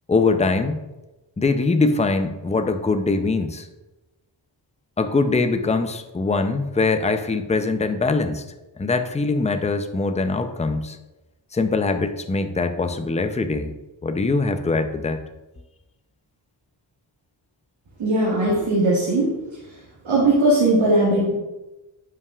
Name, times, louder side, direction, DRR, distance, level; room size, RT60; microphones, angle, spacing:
voice 1, 0.1-0.8 1.4-3.7 5.0-8.4 8.8-11.0 11.5-13.7 14.0-15.2, left 3 dB, 15° left, 8 dB, 0.5 m, -22 dB
voice 2, 18.0-19.3 20.0-21.3, right 2 dB, 85° right, -7 dB, 1.9 m, -19 dB
9.4 x 5.6 x 2.4 m, 1.0 s
wide cardioid pair, 75°, 46 cm